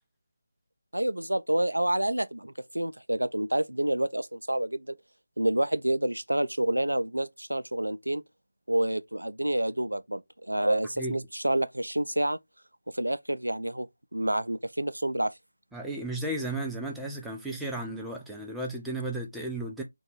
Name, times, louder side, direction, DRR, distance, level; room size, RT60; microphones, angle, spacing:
voice 1, 0.9-5.0 5.4-8.2 8.7-12.4 12.9-13.9 14.1-15.3 17.0-17.1, right 1 dB, 85° right, 0.3 m, -28 dB
voice 2, 15.7-19.8, right 2 dB, ahead, 0.4 m, -34 dB
2.6 x 2.2 x 2.8 m
figure-of-eight pair, 160°, 0 cm